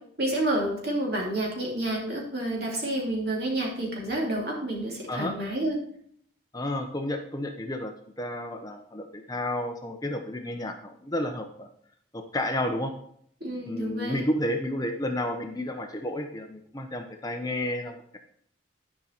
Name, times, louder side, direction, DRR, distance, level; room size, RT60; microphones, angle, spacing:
voice 1, 0.2-5.8 13.4-14.2, right 1 dB, 55° right, -2 dB, 2.7 m, -29 dB
voice 2, 6.5-11.7 12.3-12.9 13.7-18.2, left 1 dB, 20° left, 4 dB, 0.7 m, -31 dB
11.0 x 5.3 x 4.3 m, 0.65 s
head